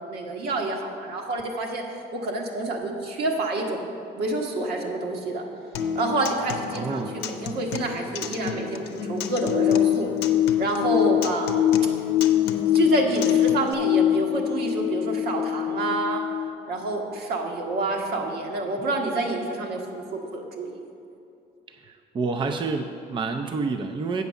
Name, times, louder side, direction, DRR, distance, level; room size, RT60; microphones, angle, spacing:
voice 1, 0.0-3.8 4.1-5.4 5.9-10.1 10.6-11.7 12.7-16.2 16.7-20.8 24.1-24.2, right 2 dB, 70° right, 1 dB, 1.4 m, -28 dB
Acoustic guitar, 5.7-13.7, left 6 dB, 80° left, 0.6 m, -34 dB
voice 2, 6.7-7.1 21.8-24.2, right 4 dB, 30° right, 5 dB, 0.5 m, -28 dB
sound 1, 9.4-16.5, left 12 dB, 30° left, 0.4 m, -23 dB
8.1 x 5.3 x 7.0 m, 2.6 s
cardioid pair, 110°, 17 cm